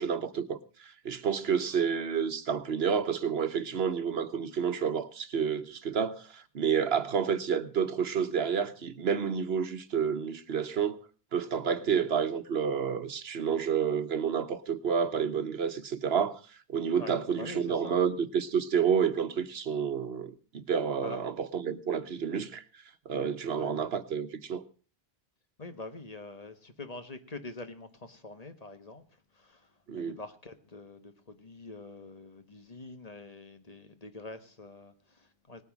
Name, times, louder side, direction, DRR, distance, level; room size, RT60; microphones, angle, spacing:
voice 1, 0.0-11.0 11.3-16.4 16.7-22.6 23.0-24.6 29.9-30.2, right 7 dB, 80° right, 1.3 m, -29 dB
voice 2, 17.0-18.1 21.0-21.2 23.5-24.0 25.6-29.0 29.3-35.6, left 2 dB, 40° left, 1.4 m, -45 dB
19.0 x 9.3 x 6.0 m
omnidirectional pair, 1.0 m